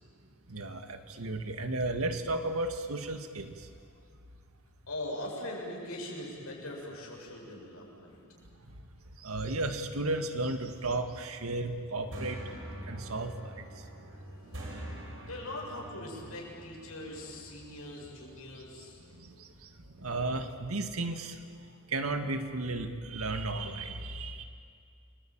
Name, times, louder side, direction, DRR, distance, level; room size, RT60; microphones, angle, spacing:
voice 1, 0.5-3.5 9.2-12.4 12.9-13.6 20.0-21.3 21.9-24.4, right 2 dB, 85° right, 6 dB, 2.1 m, -34 dB
voice 2, 4.9-8.2 14.6-14.7 15.3-19.0, left 1 dB, 80° left, -2 dB, 7.6 m, -41 dB
sound 1, 11.7-20.3, right 1 dB, 65° right, 5.7 m, -46 dB
30.0 x 22.0 x 9.0 m, 2.3 s
head